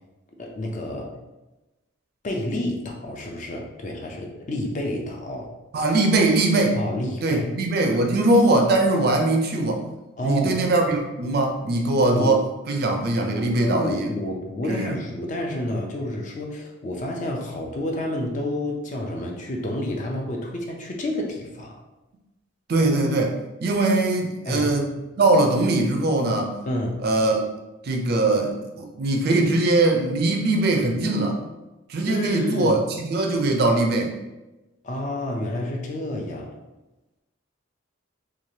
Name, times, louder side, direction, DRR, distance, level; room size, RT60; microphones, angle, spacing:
voice 1, 0.4-1.1 2.2-5.5 6.7-7.6 10.2-10.6 12.0-12.4 13.3-21.8 24.4-24.7 26.7-27.0 32.0-32.8 34.8-36.6, left 1 dB, 35° left, 1 dB, 0.4 m, -29 dB
voice 2, 5.7-6.8 7.2-9.8 10.2-12.4 12.7-14.1 14.7-15.0 22.7-26.5 27.0-27.5 27.8-31.4 31.9-34.1, right 2 dB, 50° right, 3 dB, 0.4 m, -21 dB
3.1 x 2.4 x 2.7 m, 1.0 s
head